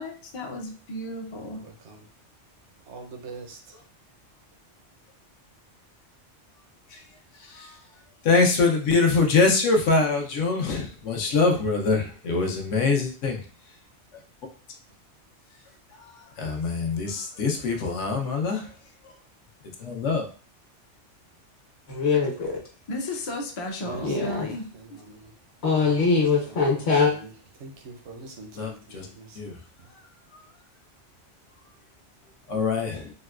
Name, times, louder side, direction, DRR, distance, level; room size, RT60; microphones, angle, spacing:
voice 1, 0.0-1.6 22.9-24.6, left 2 dB, 50° left, 0.3 m, -33 dB
voice 2, 2.9-3.6 23.8-24.5 24.7-24.8 25.8-26.0 27.1-27.3 27.6-27.7 28.1-28.8, right 4 dB, 75° right, 0.9 m, -40 dB
voice 3, 7.4-7.7 8.2-13.4 16.4-18.7 19.8-20.3 28.5-29.1 29.4-29.6 32.5-33.1, left 4 dB, 90° left, 1.0 m, -24 dB
voice 4, 21.9-22.6 24.0-24.5 25.6-27.1, left 4 dB, 65° left, 1.2 m, -22 dB
3.9 x 2.1 x 2.3 m
omnidirectional pair, 1.2 m